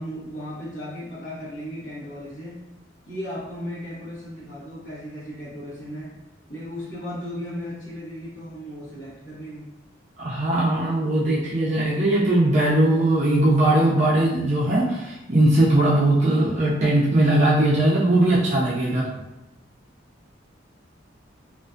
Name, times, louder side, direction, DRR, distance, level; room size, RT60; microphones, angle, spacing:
voice 1, 0.0-2.6 3.1-6.2 6.5-9.7 13.5-13.6, equal, 65° left, -10 dB, 0.9 m, -36 dB
voice 2, 10.2-19.0, right 1 dB, 35° right, -6 dB, 0.4 m, -20 dB
2.4 x 2.3 x 2.5 m, 0.94 s
head